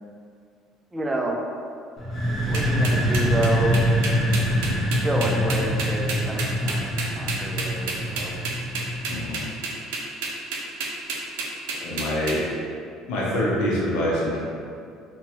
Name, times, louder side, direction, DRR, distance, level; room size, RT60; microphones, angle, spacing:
voice 1, 0.9-1.4 2.4-4.3 4.9-8.3 11.7-12.4, right 1 dB, 15° right, 0 dB, 0.4 m, -30 dB
sound 1, 2.0-9.6, equal, 20° left, 0.8 m, -24 dB
sound 2, 2.5-12.3, right 4 dB, 90° right, 0.4 m, -30 dB
voice 2, 9.1-9.4 11.8-12.5 13.1-14.4, left 1 dB, 75° left, -5 dB, 0.6 m, -25 dB
2.9 x 2.2 x 2.8 m, 2.3 s
cardioid pair, 110°, 0 cm